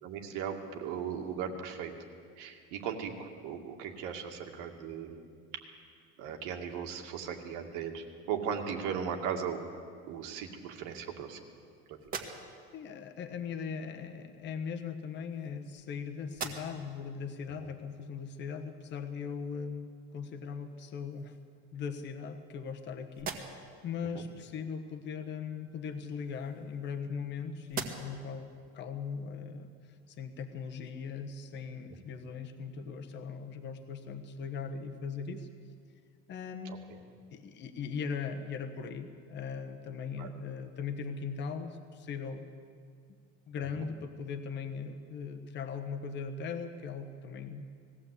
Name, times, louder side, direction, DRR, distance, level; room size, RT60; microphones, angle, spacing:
voice 1, 0.0-1.9 2.4-5.2 6.2-9.7 10.1-11.4 11.9-12.0 24.1-24.2 36.6-37.0 40.2-40.3 43.8-43.9, right 7 dB, 80° right, 3 dB, 2.3 m, -37 dB
sound 1, 12.0-12.8 14.0-14.1 15.1-15.9 16.3-17.0 17.5-17.6 20.3-20.4 20.8-21.5 22.1-22.8 23.1-23.8 25.8-27.3 27.7-28.3, right 5 dB, 30° right, 1.7 m, -43 dB
voice 2, 12.7-21.4 21.7-29.7 30.1-35.5 36.3-37.0 37.3-42.5 43.5-47.7, left 6 dB, 35° left, 5 dB, 1.3 m, -39 dB
20.0 x 15.5 x 8.4 m, 2.2 s
cardioid pair, 165°, 30 cm